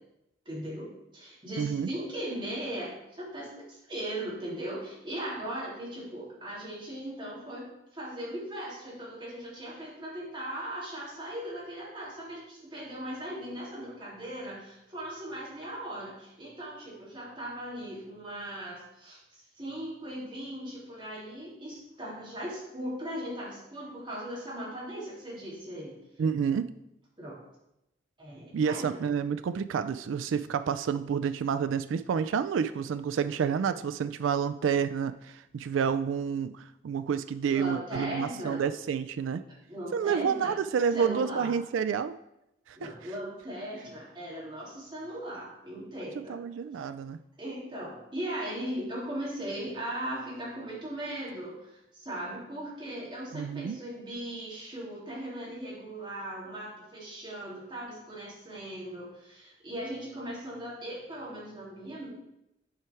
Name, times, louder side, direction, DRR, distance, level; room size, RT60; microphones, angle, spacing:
voice 1, 0.4-7.7 7.9-25.9 27.2-27.4 28.2-29.0 37.5-38.6 39.7-40.6 40.9-41.5 42.8-46.4 46.7-46.8 47.4-62.1, right 1 dB, 25° right, -6 dB, 2.9 m, -38 dB
voice 2, 1.6-1.9 26.2-26.7 28.5-39.4 39.9-42.1 42.7-42.9 46.3-47.2 53.3-53.8, right 7 dB, 90° right, 12 dB, 0.3 m, -29 dB
8.9 x 4.8 x 4.5 m, 0.85 s
head